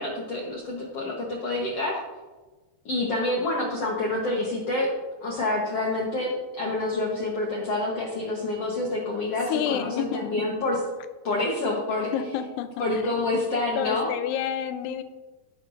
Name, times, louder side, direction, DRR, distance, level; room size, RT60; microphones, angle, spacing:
voice 1, 0.0-2.0 2.8-4.9 5.2-10.8 11.2-12.1 12.8-14.1, left 2 dB, 70° left, -2 dB, 1.4 m, -27 dB
voice 2, 9.5-10.3 12.0-13.1 13.8-15.0, left 9 dB, 85° left, 10 dB, 2.8 m, -29 dB
16.0 x 9.6 x 2.6 m, 1.3 s
omnidirectional pair, 4.6 m